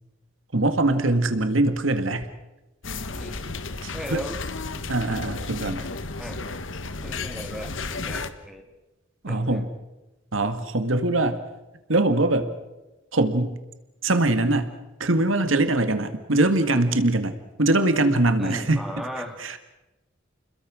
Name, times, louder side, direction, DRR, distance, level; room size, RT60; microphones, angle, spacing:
voice 1, 0.5-2.3 3.8-4.2 4.9-5.8 9.2-9.7 10.3-11.4 11.9-12.5 13.1-13.6 14.0-14.7 15.0-18.8 19.4-19.6, right 2 dB, 85° right, 9 dB, 1.9 m, -22 dB
sound 1, 2.8-8.3, left 3 dB, 75° left, 1.4 m, -33 dB
voice 2, 3.2-3.5 3.9-4.4 6.2-6.4 7.0-8.7 9.3-9.6 18.4-19.6, equal, ahead, 2 dB, 3.2 m, -37 dB
29.5 x 21.5 x 6.3 m, 1.0 s
head